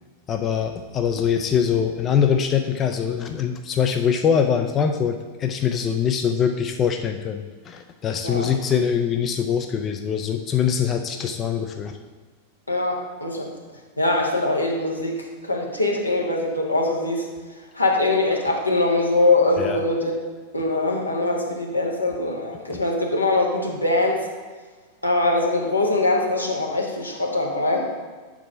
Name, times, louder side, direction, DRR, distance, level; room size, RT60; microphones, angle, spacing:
voice 1, 0.3-12.0 19.6-19.8 22.7-22.8, left 7 dB, 30° left, 5 dB, 0.4 m, -23 dB
voice 2, 12.7-13.5 14.0-17.3 17.7-20.1 20.5-24.2 25.0-27.8, left 2 dB, 85° left, 0 dB, 1.1 m, -22 dB
5.4 x 4.8 x 5.8 m, 1.4 s
figure-of-eight pair, 90°, 0 cm